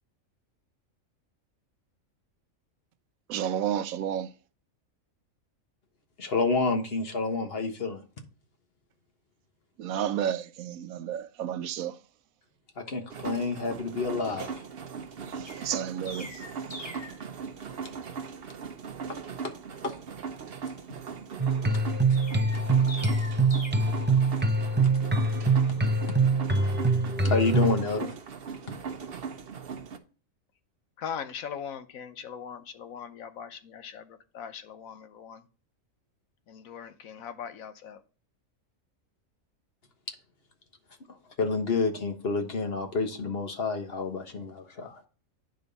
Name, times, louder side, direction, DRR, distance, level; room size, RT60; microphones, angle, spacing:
voice 1, 3.3-4.3 9.8-11.9 15.6-16.3, right 10 dB, 85° right, 1.1 m, -31 dB
voice 2, 6.2-8.2 12.8-14.6 19.1-19.2 19.4-19.5 19.8-20.0 27.2-28.1 41.1-45.0, left 4 dB, 45° left, 1.4 m, -29 dB
sound 1, 13.1-30.0, right 6 dB, 50° right, 0.9 m, -39 dB
Chirp tweet, 15.4-17.2 22.1-23.7, left 1 dB, 20° left, 1.5 m, -43 dB
sound 2, 21.4-27.8, right 3 dB, 15° right, 0.4 m, -24 dB
voice 3, 31.0-34.0 34.3-35.4 36.5-38.0, left 7 dB, 80° left, 1.2 m, -40 dB
9.5 x 5.2 x 4.0 m
omnidirectional pair, 1.4 m